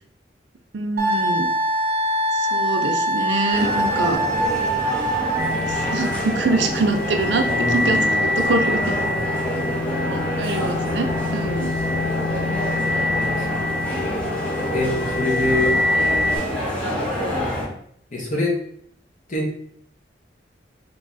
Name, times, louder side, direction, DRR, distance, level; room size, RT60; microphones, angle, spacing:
voice 1, 0.7-1.5 2.3-4.2 5.7-7.4 7.7-9.0 10.0-11.7, right 3 dB, 80° right, 5 dB, 0.5 m, -24 dB
Wind instrument woodwind instrument, 1.0-5.8, right 1 dB, 55° right, 0.8 m, -23 dB
sound 1, 3.5-17.7, equal, 10° left, 0.9 m, -27 dB
sound 2, 5.4-16.4, left 2 dB, 65° left, 0.4 m, -25 dB
voice 2, 7.5-9.1 10.0-11.5 11.8-12.7 13.5-14.3 14.7-15.8 17.2-17.5 18.1-18.6 19.3-19.5, left 2 dB, 45° left, -1 dB, 0.9 m, -28 dB
3.3 x 2.3 x 3.9 m, 0.67 s
head